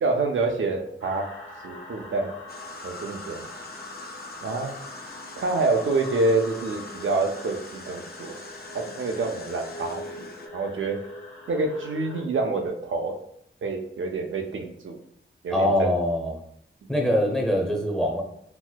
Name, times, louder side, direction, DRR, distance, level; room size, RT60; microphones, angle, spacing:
voice 1, 0.0-1.3 1.6-2.3 2.8-3.5 4.4-4.7 5.4-8.4 8.7-11.0 11.5-13.1 13.6-15.0 15.4-15.9, right 3 dB, 70° right, 3 dB, 0.4 m, -27 dB
sound 1, 1.0-12.2, left 1 dB, 75° left, 0.8 m, -42 dB
sound 2, 2.5-10.5, left 4 dB, 45° left, 0.4 m, -45 dB
voice 2, 15.5-16.4 16.9-18.2, equal, ahead, 0 dB, 0.6 m, -23 dB
4.2 x 2.1 x 2.2 m, 0.72 s
wide cardioid pair, 65°, 21 cm